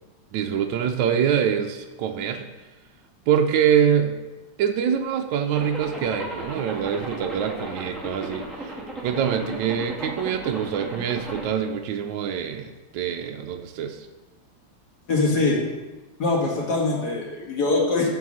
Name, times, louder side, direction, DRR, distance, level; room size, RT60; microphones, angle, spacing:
voice 1, 0.3-2.5 3.3-4.2 4.6-14.1, right 8 dB, 75° right, 4 dB, 1.3 m, -25 dB
Zipper (clothing), 5.5-11.5, right 1 dB, ahead, 1.6 m, -35 dB
voice 2, 15.1-15.6 16.2-18.1, left 3 dB, 55° left, -2 dB, 2.2 m, -22 dB
8.3 x 4.7 x 6.2 m, 1.1 s
omnidirectional pair, 2.1 m